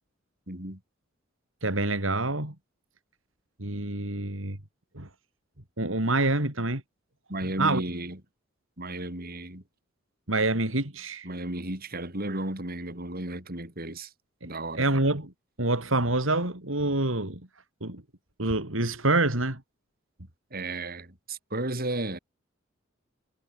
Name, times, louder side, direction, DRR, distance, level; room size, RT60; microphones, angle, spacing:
voice 1, 0.5-0.8 7.3-8.2 8.8-9.6 11.2-14.1 14.4-14.9 20.5-22.2, right 1 dB, 50° right, 6.7 m, -34 dB
voice 2, 1.6-2.5 3.6-4.6 4.9-5.1 5.8-6.8 7.6-7.8 10.3-11.3 14.4-14.5 14.8-15.3 15.6-17.4 17.8-18.0 18.4-19.6, right 2 dB, 75° right, 4.3 m, -26 dB
head